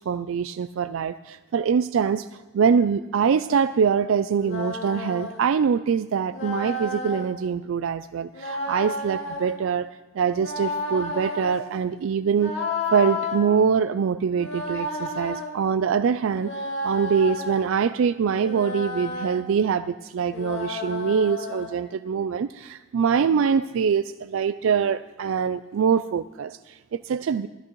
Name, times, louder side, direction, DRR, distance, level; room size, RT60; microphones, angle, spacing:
voice 1, 0.1-2.3 2.5-12.5 12.9-27.5, right 6 dB, 75° right, 0.4 m, -24 dB
sound 1, 4.3-5.4 6.3-7.3 8.3-9.6 10.3-11.6 12.3-13.4 14.3-15.5 16.3-17.7 18.3-19.4 20.3-21.7, left 2 dB, 70° left, 2.1 m, -31 dB
19.5 x 14.0 x 3.1 m
head